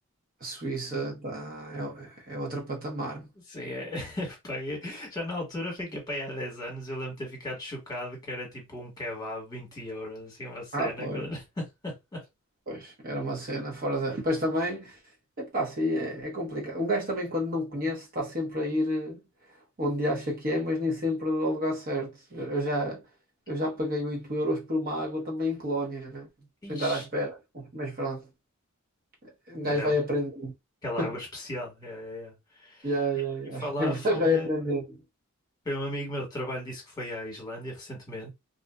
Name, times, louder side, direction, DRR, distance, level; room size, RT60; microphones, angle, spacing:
voice 1, 0.4-3.3 10.7-11.3 12.7-15.0 15.4-19.2 19.8-23.0 23.5-26.3 26.7-28.3 29.2-30.5 31.0-31.1 32.8-34.8, equal, 45° right, 1.0 m, -30 dB
voice 2, 3.5-12.2 26.6-27.0 29.6-30.0 30.8-32.9 33.6-34.5 35.6-38.3, left 1 dB, 20° left, 1.3 m, -36 dB
2.6 x 2.4 x 2.3 m
head